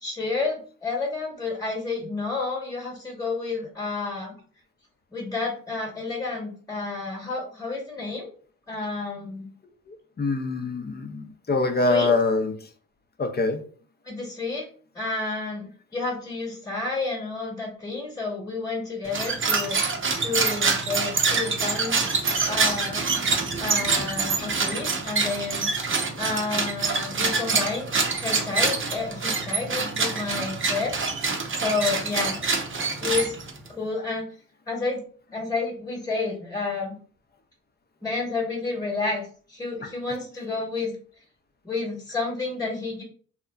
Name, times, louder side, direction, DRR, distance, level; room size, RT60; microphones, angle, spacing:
voice 1, 0.0-4.3 5.1-8.3 8.7-9.5 11.8-12.2 14.0-14.7 14.9-19.8 20.2-22.0 22.4-23.2 23.6-25.7 26.2-27.9 28.1-32.4 33.0-33.3 33.7-34.3 34.7-35.0 35.3-36.9 38.0-40.9 41.6-43.0, left 3 dB, 10° left, -1 dB, 1.2 m, -30 dB
voice 2, 9.9-12.5 13.2-13.6, left 3 dB, 30° left, 6 dB, 0.6 m, -24 dB
sound 1, 19.0-33.7, right 4 dB, 35° right, 0.7 m, -26 dB
2.8 x 2.2 x 2.4 m, 0.43 s
supercardioid pair, 50°, 35 cm